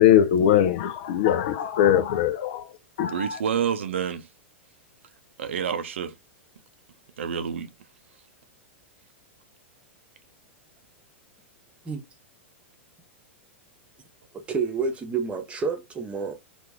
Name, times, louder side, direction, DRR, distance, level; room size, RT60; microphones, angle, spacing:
voice 1, 0.0-2.7 3.0-3.4, left 10 dB, 60° left, 0.5 m, -21 dB
voice 2, 3.1-4.3 5.4-6.2 7.2-7.7, right 8 dB, 75° right, 0.6 m, -28 dB
voice 3, 14.3-16.3, right 5 dB, 20° right, 0.9 m, -29 dB
3.0 x 2.5 x 3.6 m
hypercardioid pair, 105°, 7 cm